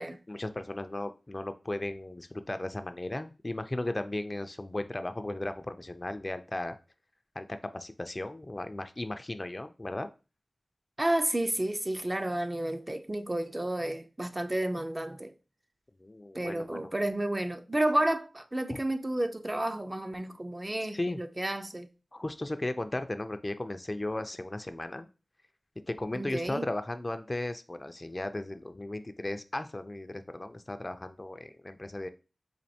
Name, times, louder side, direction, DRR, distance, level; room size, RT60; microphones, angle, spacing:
voice 1, 0.3-6.7 7.4-10.1 16.0-16.9 18.7-18.8 20.9-21.2 22.1-25.1 25.9-32.1, left 1 dB, 35° left, 0.3 m, -36 dB
voice 2, 11.0-15.4 16.3-21.9 26.1-26.7, right 1 dB, 30° right, 0.4 m, -31 dB
4.2 x 2.6 x 2.7 m
cardioid pair, 45°, 0 cm